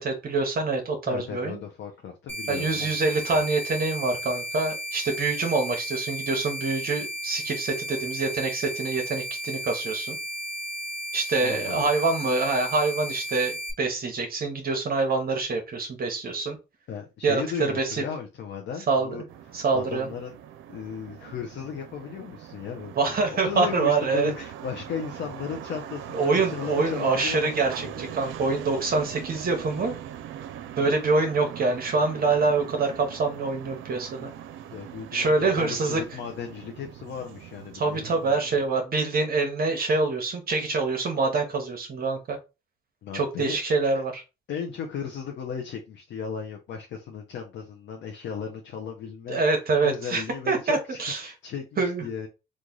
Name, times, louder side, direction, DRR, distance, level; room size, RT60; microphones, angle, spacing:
voice 1, 0.0-1.6 2.5-10.2 11.1-16.6 17.2-17.4 17.7-18.0 18.9-19.1 19.5-20.1 23.0-24.3 26.1-30.0 30.8-34.3 35.1-36.0 37.7-42.4 43.1-44.2 49.3-51.3 51.8-52.0, right 3 dB, 50° right, 3 dB, 0.9 m, -25 dB
voice 2, 1.1-3.5 11.4-11.9 16.9-19.2 19.7-20.4 20.7-23.0 23.3-27.5 27.8-28.0 28.8-28.9 34.1-34.3 34.7-38.4 43.0-43.6 43.9-44.0 44.5-49.4 49.8-52.3, left 7 dB, 70° left, 2 dB, 0.7 m, -36 dB
sound 1, 2.3-13.7, right 1 dB, 10° left, 1.1 m, -34 dB
sound 2, 19.3-38.7, right 10 dB, 85° right, 0.5 m, -41 dB
3.1 x 2.5 x 3.7 m, 0.28 s
cardioid pair, 90°, 20 cm